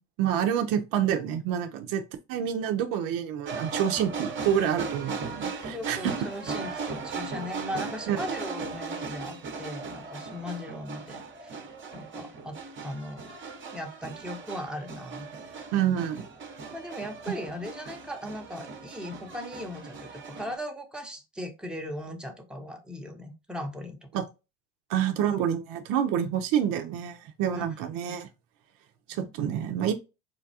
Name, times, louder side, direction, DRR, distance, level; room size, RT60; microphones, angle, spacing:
voice 1, 0.2-2.0 2.3-6.1 8.1-8.2 15.7-16.3 24.1-24.2 24.9-28.3 29.1-29.9, right 9 dB, 65° right, 0.7 m, -27 dB
sound 1, 3.5-20.6, right 4 dB, 35° right, 0.9 m, -38 dB
voice 2, 5.7-11.6 11.9-13.2 13.7-15.6 16.7-24.2 27.5-27.6 29.1-29.3, left 1 dB, ahead, 0.9 m, -38 dB
4.4 x 2.3 x 2.7 m
hypercardioid pair, 75°, 36 cm